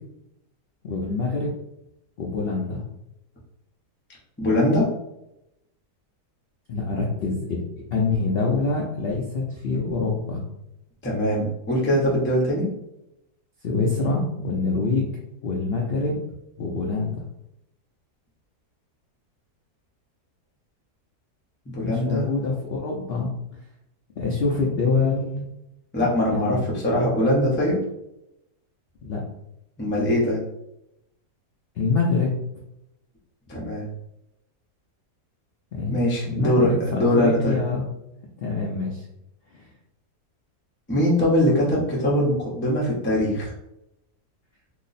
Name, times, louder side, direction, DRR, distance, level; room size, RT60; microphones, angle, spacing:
voice 1, 0.8-1.5 2.2-2.8 6.7-7.6 7.9-10.4 13.6-15.1 15.4-16.2 16.6-17.3 21.8-23.3 24.2-25.4 26.3-26.7 29.0-29.2 31.8-32.3 35.7-36.0 36.3-37.8 38.4-39.0 39.5-39.6, left 3 dB, 80° left, -3 dB, 0.5 m, -25 dB
voice 2, 4.4-4.9 11.0-12.7 21.7-22.3 25.9-27.8 29.8-30.4 33.5-33.9 35.9-37.6 40.9-43.5, left 1 dB, 20° left, -5 dB, 0.3 m, -22 dB
2.9 x 2.0 x 4.0 m, 0.84 s
omnidirectional pair, 1.7 m